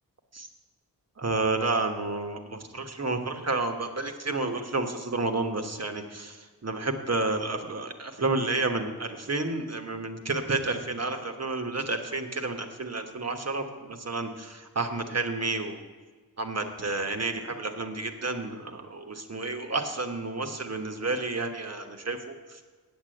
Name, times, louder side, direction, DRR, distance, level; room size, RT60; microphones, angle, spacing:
voice 1, 1.2-15.8 16.4-22.6, right 3 dB, 40° right, 5 dB, 1.4 m, -30 dB
8.3 x 8.0 x 7.8 m, 1.4 s
cardioid pair, 45°, 38 cm